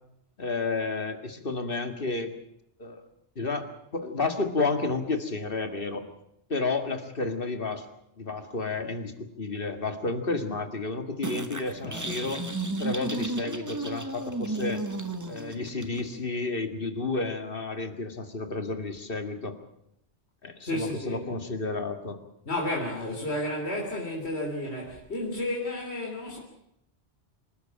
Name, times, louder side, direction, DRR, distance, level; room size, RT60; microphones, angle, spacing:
voice 1, 0.4-2.3 2.8-3.0 3.4-3.7 3.9-6.0 6.5-7.8 8.2-12.4 12.8-14.8 15.3-19.6 20.4-22.2, left 3 dB, 50° left, 8 dB, 2.2 m, -31 dB
sound 1, 11.2-16.2, right 2 dB, 15° right, 1.3 m, -33 dB
voice 2, 11.7-12.3 20.6-21.2 22.5-26.4, left 1 dB, 65° left, 0 dB, 3.9 m, -32 dB
26.0 x 13.0 x 8.8 m, 0.78 s
omnidirectional pair, 1.2 m